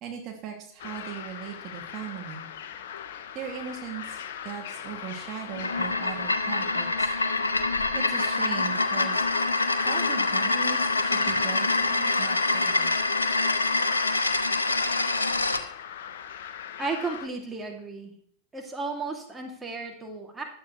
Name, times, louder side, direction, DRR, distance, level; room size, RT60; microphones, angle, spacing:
voice 1, 0.0-2.5 3.3-7.1 7.9-9.2 9.8-12.9, right 8 dB, 35° right, 1 dB, 2.6 m, -39 dB
sound 1, 0.8-17.3, left 9 dB, 55° left, 1.0 m, -40 dB
sound 2, 5.5-15.6, left 3 dB, 75° left, 1.0 m, -25 dB
voice 2, 16.8-18.1 18.5-20.4, right 3 dB, 15° right, 1 dB, 2.7 m, -34 dB
15.5 x 12.0 x 3.3 m, 0.62 s
figure-of-eight pair, 90°, 0 cm